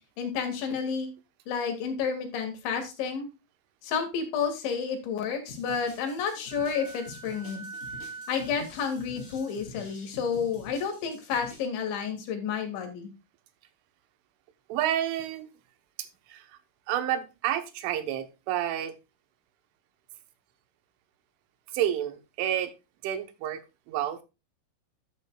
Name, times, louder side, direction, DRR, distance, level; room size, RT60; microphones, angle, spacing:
voice 1, 0.2-1.1 1.5-3.3 3.8-7.7 8.3-13.1, left 6 dB, 75° left, 4 dB, 4.5 m, -30 dB
sound 1, 5.5-11.7, left 1 dB, 20° left, 2.1 m, -47 dB
Wind instrument woodwind instrument, 6.5-9.9, right 3 dB, 50° left, 0.9 m, -44 dB
voice 2, 14.7-15.5 16.0-16.6 16.9-19.0 21.7-22.7 23.0-23.6 23.9-24.2, right 11 dB, 90° right, 10 dB, 3.6 m, -30 dB
12.5 x 8.4 x 2.3 m, 0.27 s
omnidirectional pair, 5.4 m